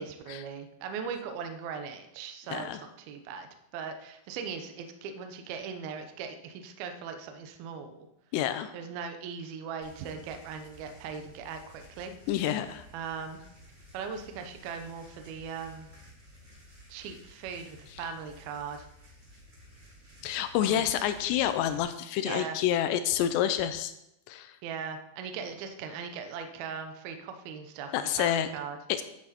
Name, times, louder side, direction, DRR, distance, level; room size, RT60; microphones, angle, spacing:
voice 1, 0.0-8.1 8.7-12.1 12.9-13.4 13.9-15.9 16.9-18.9 20.6-20.9 22.2-22.6 24.6-28.8, right 6 dB, 75° right, 6 dB, 2.4 m, -39 dB
voice 2, 2.5-2.8 8.3-8.7 12.3-12.9 20.2-23.9 24.3-24.6 27.9-28.5 28.9-29.0, left 11 dB, 80° left, 10 dB, 2.6 m, -28 dB
sound 1, 9.8-21.8, left 1 dB, 20° right, 4.2 m, -54 dB
12.0 x 8.7 x 4.3 m, 0.83 s
omnidirectional pair, 5.4 m